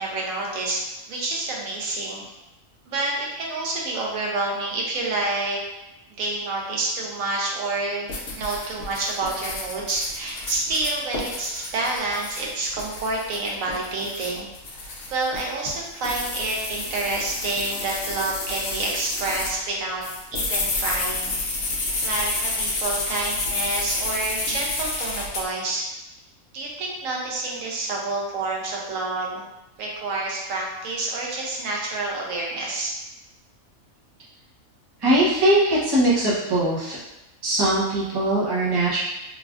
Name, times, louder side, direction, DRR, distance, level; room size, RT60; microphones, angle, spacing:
voice 1, 0.0-2.2 2.9-5.6 6.2-8.1 8.4-14.5 15.1-20.1 20.3-21.4 22.0-25.9 26.5-29.4 29.8-32.9, right 2 dB, 75° right, -2 dB, 1.0 m, -28 dB
sound 1, 8.1-19.6 20.0-25.4, left 2 dB, 60° left, 0.7 m, -30 dB
voice 2, 35.0-37.0 37.4-39.0, right 1 dB, 25° right, -7 dB, 0.5 m, -21 dB
3.2 x 2.4 x 2.3 m, 0.96 s
omnidirectional pair, 1.4 m